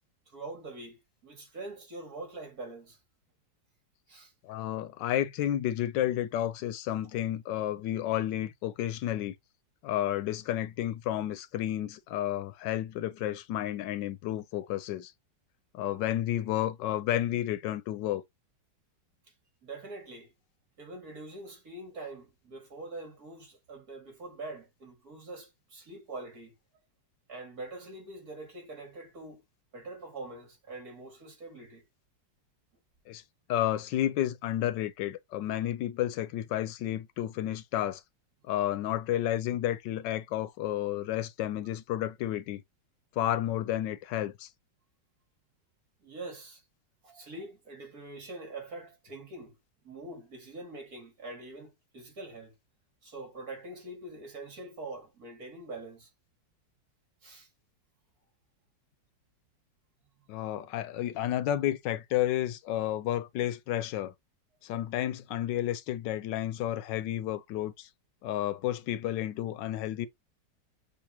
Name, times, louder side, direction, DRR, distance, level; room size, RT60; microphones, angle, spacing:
voice 1, 0.3-3.0 4.1-4.3 15.9-16.1 19.6-20.3 20.8-26.5 27.3-29.4 29.7-31.8 46.0-46.6 47.0-49.6 49.8-52.5 53.0-56.1 57.2-57.5 60.4-60.5, right 2 dB, 55° right, 2.7 m, -44 dB
voice 2, 4.4-9.3 9.8-15.1 15.7-18.2 33.1-33.2 33.5-38.0 38.5-42.6 43.2-44.5 60.3-64.1 64.6-67.9 68.2-70.1, left 12 dB, 80° left, 1.2 m, -31 dB
6.5 x 2.8 x 2.9 m
omnidirectional pair, 1.9 m